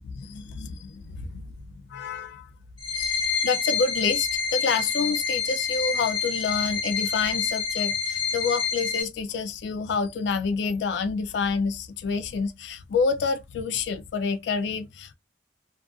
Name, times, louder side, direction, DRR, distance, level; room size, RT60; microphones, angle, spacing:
voice 1, 0.2-1.5 1.9-2.5 2.9-15.1, left 5 dB, 75° left, 0.3 m, -28 dB
sound 1, 2.8-9.0, left 6 dB, 25° left, 0.8 m, -27 dB
2.4 x 2.4 x 2.3 m
head